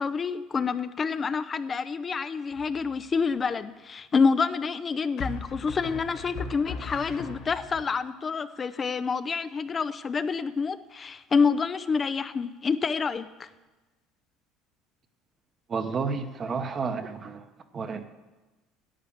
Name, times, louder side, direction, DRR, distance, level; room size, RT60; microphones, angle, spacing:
voice 1, 0.0-13.5, left 5 dB, 30° left, 12 dB, 0.5 m, -27 dB
sound 1, 2.5-3.1 5.2-7.8, left 4 dB, 60° left, 2.0 m, -38 dB
voice 2, 15.7-17.5 17.7-18.0, right 5 dB, 35° right, 8 dB, 1.0 m, -31 dB
10.0 x 8.4 x 7.2 m, 1.2 s
supercardioid pair, 105°, 0 cm